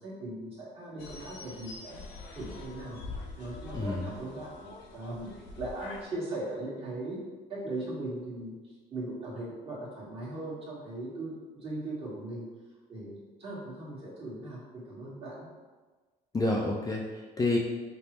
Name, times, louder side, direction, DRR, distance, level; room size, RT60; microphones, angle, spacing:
voice 1, 0.0-2.0 2.3-3.0 3.4-5.3 5.6-7.2 7.5-12.4 12.9-15.5, right 2 dB, 35° right, -6 dB, 1.4 m, -39 dB
sound 1, 1.0-6.0, left 3 dB, 80° left, 0.6 m, -45 dB
voice 2, 3.7-4.1 16.3-17.6, left 2 dB, 20° left, -2 dB, 0.4 m, -29 dB
5.2 x 2.0 x 3.0 m, 1.3 s
cardioid pair, 110°, 17 cm